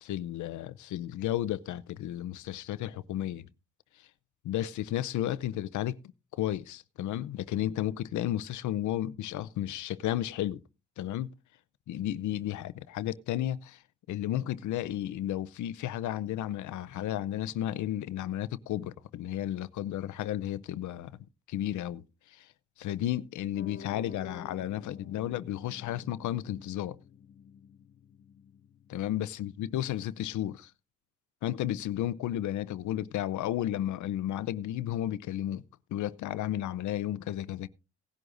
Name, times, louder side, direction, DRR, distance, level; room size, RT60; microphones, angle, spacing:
voice 1, 0.0-3.5 4.4-6.0 6.4-10.6 11.0-11.3 11.9-13.8 14.1-21.2 21.5-22.0 22.3-22.5 22.8-27.0 28.9-30.7 31.4-35.6 35.9-37.7, left 12 dB, 75° left, 0.7 m, -33 dB
Piano, 23.6-30.1, left 6 dB, 35° left, 0.7 m, -50 dB
18.0 x 11.0 x 2.6 m
cardioid pair, 90°, 30 cm